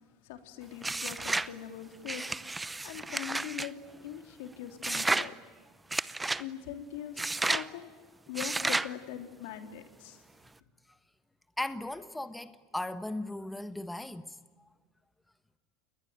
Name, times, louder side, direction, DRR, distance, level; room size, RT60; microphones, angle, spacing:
voice 1, 0.0-2.4 2.8-5.3 6.4-7.9 8.3-10.2, left 10 dB, 80° left, 3.2 m, -42 dB
sound 1, 0.8-1.5 2.1-3.7 4.8-5.3 5.9-6.4 7.2-7.7 8.4-8.9, right 2 dB, 10° right, 0.8 m, -31 dB
voice 2, 11.6-14.4, left 1 dB, 5° left, 1.2 m, -37 dB
29.0 x 21.5 x 9.1 m
supercardioid pair, 105°, 0 cm